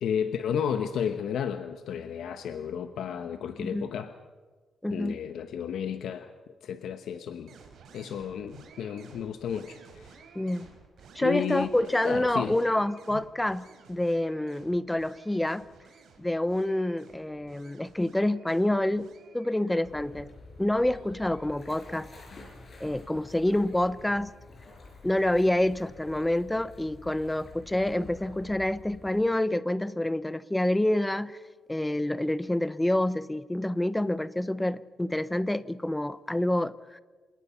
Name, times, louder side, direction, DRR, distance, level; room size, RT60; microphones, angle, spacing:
voice 1, 0.0-4.1 4.9-6.3 6.6-7.5 7.9-10.2 11.2-12.6 13.1-13.2, left 8 dB, 75° left, 8 dB, 1.0 m, -32 dB
voice 2, 3.6-3.9 4.8-5.2 10.3-10.7 11.1-15.7 16.2-20.3 20.6-22.1 22.8-24.3 25.0-31.4 31.7-37.0, left 1 dB, 5° left, 16 dB, 0.6 m, -27 dB
sound 1, 7.5-24.4, right 5 dB, 75° right, 4.3 m, -55 dB
sound 2, 19.8-29.2, left 3 dB, 35° left, 5.3 m, -49 dB
28.0 x 18.5 x 5.7 m, 1.4 s
cardioid pair, 145°, 0 cm